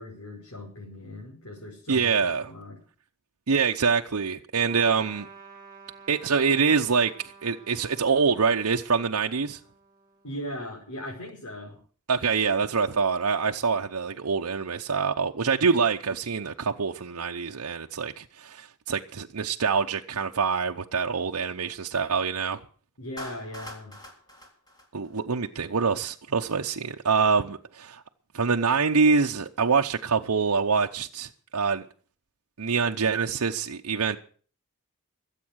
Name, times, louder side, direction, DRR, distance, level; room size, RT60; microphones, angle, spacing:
voice 1, 0.0-2.1 2.5-2.8 10.2-11.8 23.0-23.9, left 1 dB, 80° left, 5.2 m, -38 dB
voice 2, 1.9-2.5 3.5-5.3 6.1-9.6 12.1-22.6 24.9-28.0 28.3-31.8 32.6-34.2, right 5 dB, 85° right, 0.8 m, -25 dB
Trumpet, 4.7-10.5, right 5 dB, 15° right, 2.8 m, -51 dB
Clapping, 23.2-25.6, equal, 20° left, 3.8 m, -44 dB
22.0 x 8.4 x 6.4 m
head